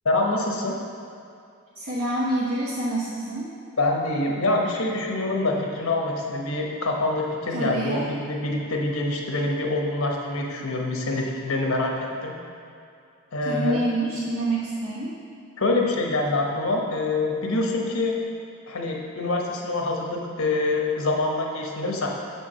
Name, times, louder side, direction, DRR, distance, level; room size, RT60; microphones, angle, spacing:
voice 1, 0.0-0.8 3.8-11.9 12.2-12.4 13.3-13.8 15.6-18.2 18.7-22.1, left 2 dB, 70° left, 0 dB, 1.0 m, -25 dB
voice 2, 1.7-3.5 7.5-8.0 13.4-15.1, right 1 dB, 65° right, -8 dB, 1.0 m, -27 dB
7.1 x 4.6 x 5.6 m, 2.5 s
head